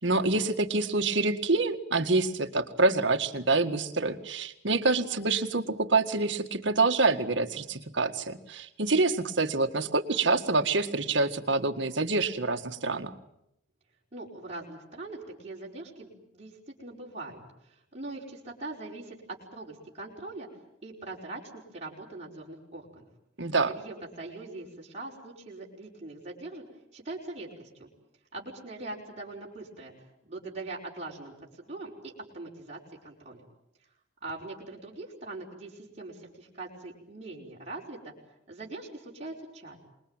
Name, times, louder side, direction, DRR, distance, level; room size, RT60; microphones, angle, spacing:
voice 1, 0.0-13.1 23.4-23.7, right 3 dB, 65° right, 7 dB, 1.9 m, -26 dB
voice 2, 14.1-16.5 16.8-19.2 19.5-20.5 20.8-23.0 23.7-26.6 26.9-27.9 28.3-29.9 30.2-33.4 34.2-38.1 38.5-39.8, right 2 dB, 35° right, -4 dB, 5.1 m, -42 dB
26.5 x 21.5 x 9.0 m, 0.80 s
head